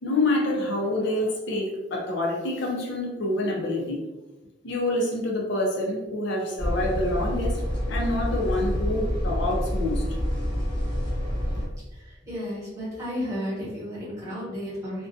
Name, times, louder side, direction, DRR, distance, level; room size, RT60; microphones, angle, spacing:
voice 1, 0.0-4.0 4.6-7.6 7.9-10.0, left 1 dB, 65° left, -1 dB, 0.5 m, -27 dB
sound 1, 6.6-11.7, equal, 25° left, 0.7 m, -27 dB
voice 2, 11.9-15.1, equal, 15° right, -8 dB, 1.2 m, -33 dB
2.4 x 2.2 x 2.5 m, 1.1 s
head